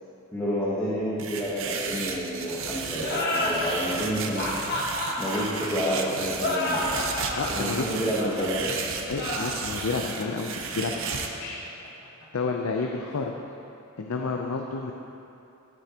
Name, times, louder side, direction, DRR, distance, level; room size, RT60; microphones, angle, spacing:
voice 1, 0.3-4.5 5.2-7.0 7.5-8.8, equal, 15° left, -8 dB, 1.1 m, -29 dB
sound 1, 1.2-11.3, right 5 dB, 65° right, 0.7 m, -34 dB
sound 2, 3.0-12.2, left 2 dB, 50° left, 1.5 m, -31 dB
voice 2, 7.4-7.9 9.1-11.6 12.3-13.3 14.0-14.9, left 4 dB, 90° left, 2 dB, 0.6 m, -30 dB
12.0 x 9.4 x 2.9 m, 2.8 s
head